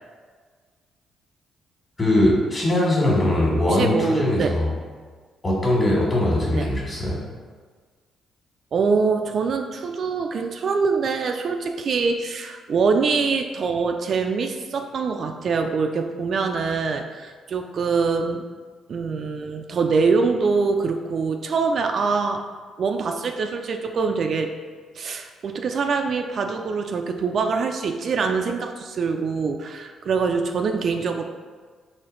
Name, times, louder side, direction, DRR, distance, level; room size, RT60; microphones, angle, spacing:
voice 1, 2.0-4.7 5.4-7.2, left 1 dB, 25° left, -4 dB, 1.5 m, -21 dB
voice 2, 3.7-4.6 6.5-6.7 8.7-18.4 18.9-22.4 22.8-24.5 25.0-31.2, right 4 dB, 55° right, 4 dB, 0.3 m, -24 dB
4.3 x 2.8 x 3.8 m, 1.5 s
cardioid pair, 90°, 0 cm